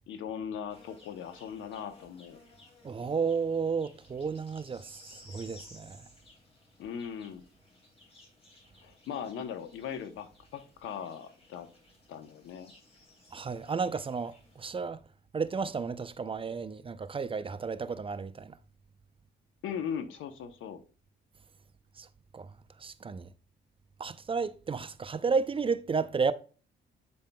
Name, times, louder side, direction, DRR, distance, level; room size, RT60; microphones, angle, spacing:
voice 1, 0.1-2.4 6.8-7.4 8.8-11.7 12.1-12.7 19.6-20.8, left 8 dB, 80° left, 0.8 m, -39 dB
sound 1, 0.7-14.7, left 2 dB, 30° left, 3.6 m, -58 dB
voice 2, 2.8-6.0 13.3-15.0 15.3-18.6 22.0-22.1 22.3-22.5 22.8-23.3 24.0-26.3, right 5 dB, 25° right, 0.5 m, -32 dB
8.4 x 5.3 x 2.2 m
cardioid pair, 90°, 20 cm